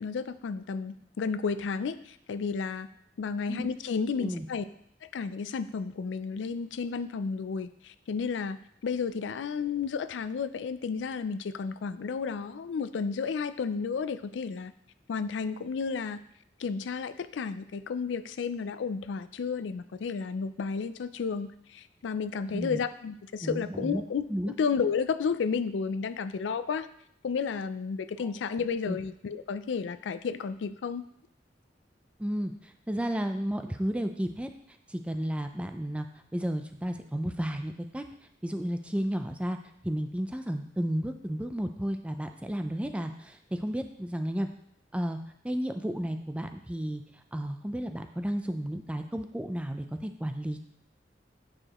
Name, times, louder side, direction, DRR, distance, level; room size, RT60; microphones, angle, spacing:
voice 1, 0.0-2.9 3.2-4.6 5.0-14.7 15.1-16.2 16.6-26.9 27.2-31.0, left 5 dB, 80° left, 12 dB, 0.4 m, -32 dB
voice 2, 22.4-22.8 23.4-24.0 24.3-24.5 28.9-29.0 32.2-34.5 34.9-36.1 36.3-38.0 38.4-39.6 39.8-44.5 44.9-45.2 45.4-47.0 47.3-50.6, equal, 5° right, 6 dB, 0.4 m, -32 dB
8.6 x 4.8 x 3.0 m, 0.69 s
head